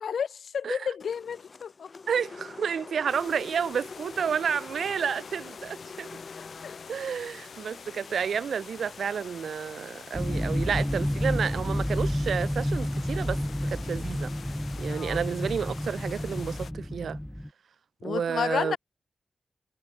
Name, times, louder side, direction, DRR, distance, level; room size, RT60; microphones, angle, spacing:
voice 1, 0.5-1.9 6.6-6.8 14.9-15.2 18.0-18.8, left 7 dB, 80° left, 0.6 m, -31 dB
sound 1, 1.0-9.3, left 4 dB, 40° left, 3.1 m, -46 dB
voice 2, 2.1-6.1 6.9-14.3 14.8-17.2 18.0-18.8, right 7 dB, 80° right, 0.8 m, -30 dB
sound 2, 3.1-16.7, left 6 dB, 65° left, 1.4 m, -46 dB
sound 3, 10.1-17.5, equal, 5° left, 0.8 m, -30 dB
wide cardioid pair, 130°, 0 cm